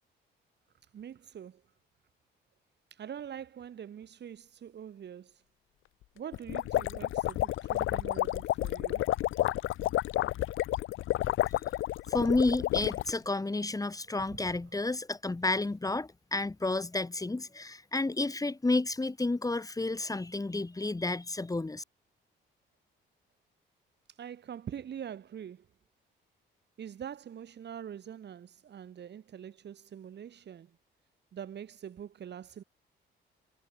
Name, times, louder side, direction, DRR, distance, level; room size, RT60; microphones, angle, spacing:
voice 1, 0.9-1.6 2.9-5.4 6.2-9.0 14.5-14.6 24.1-25.6 26.8-30.7 31.3-32.6, right 9 dB, 60° right, 6.3 m, -44 dB
sound 1, 6.3-13.2, left 15 dB, 85° left, 1.4 m, -30 dB
voice 2, 12.1-21.8, left 2 dB, 15° left, 3.3 m, -31 dB
cardioid pair, 90°, 20 cm